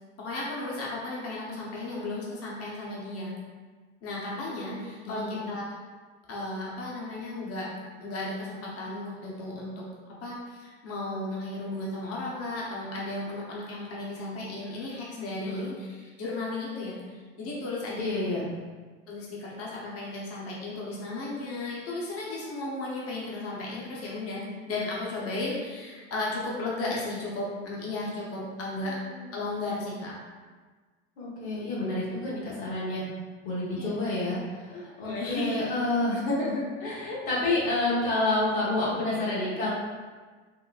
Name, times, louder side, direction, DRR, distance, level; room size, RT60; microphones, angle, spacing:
voice 1, 0.2-3.4 4.0-5.7 6.3-7.7 8.0-9.9 10.2-18.0 19.1-24.4 24.7-29.0 29.3-30.1 33.7-34.1 34.7-35.6, left 2 dB, 45° left, -5 dB, 0.9 m, -35 dB
voice 2, 4.3-5.6 15.5-15.7 18.0-18.5 28.8-29.3 31.2-33.0 33.4-39.7, left 2 dB, 85° left, -7 dB, 1.0 m, -29 dB
3.8 x 2.1 x 2.3 m, 1.4 s
hypercardioid pair, 75°, 33 cm